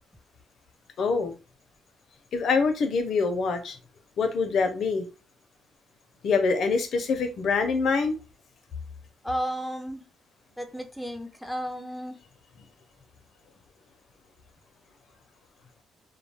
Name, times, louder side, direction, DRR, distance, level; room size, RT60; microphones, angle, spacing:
voice 1, 1.0-1.3 2.3-3.8 4.2-5.1 6.2-8.2, left 4 dB, 65° left, 7 dB, 0.5 m, -25 dB
voice 2, 9.2-10.0 10.6-12.2, equal, ahead, 5 dB, 0.5 m, -33 dB
2.2 x 2.1 x 3.3 m, 0.32 s
cardioid pair, 90°, 0 cm